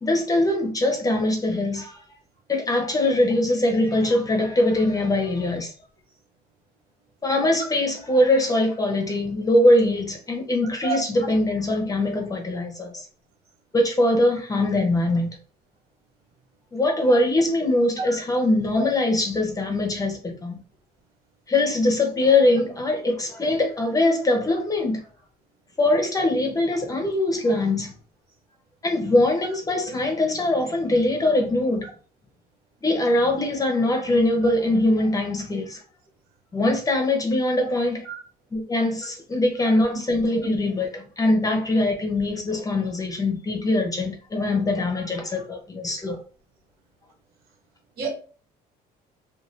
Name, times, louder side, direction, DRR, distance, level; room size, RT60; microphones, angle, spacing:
voice 1, 0.0-2.0 2.5-5.7 7.2-13.1 13.7-15.3 16.7-20.6 21.5-25.0 25.8-27.9 28.8-31.9 32.8-35.8 36.5-38.1 38.5-46.2, left 1 dB, 20° left, 0.7 m, -22 dB
voice 2, 10.8-11.3 18.0-18.2 38.0-38.2 48.0-48.1, right 5 dB, 70° right, 1.4 m, -29 dB
2.5 x 2.3 x 3.1 m
cardioid pair, 110°, 17 cm